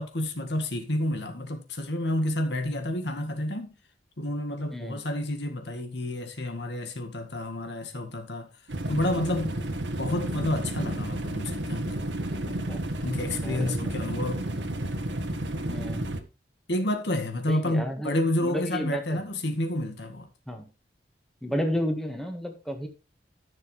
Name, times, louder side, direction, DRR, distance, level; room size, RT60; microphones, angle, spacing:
voice 1, 0.0-3.7 4.2-8.5 8.9-9.6 10.0-12.0 13.0-14.5 16.7-20.3, left 1 dB, 70° left, 1.9 m, -29 dB
sound 1, 8.7-16.2, right 1 dB, 75° right, 1.6 m, -31 dB
voice 2, 12.5-12.8 13.4-13.9 15.7-16.0 17.5-18.1 18.4-19.2 20.5-20.6 21.4-22.9, equal, ahead, 1.7 m, -32 dB
14.5 x 6.9 x 3.3 m
head